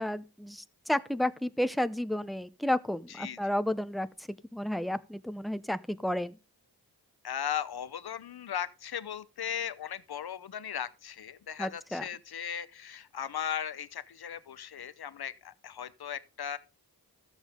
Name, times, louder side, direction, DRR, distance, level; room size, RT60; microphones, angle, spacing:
voice 1, 0.0-4.1 4.5-6.4 11.6-12.0, left 1 dB, ahead, 0.7 m, -31 dB
voice 2, 7.2-16.6, left 9 dB, 75° left, 0.8 m, -37 dB
13.5 x 7.3 x 3.8 m
wide cardioid pair, 55°, 38 cm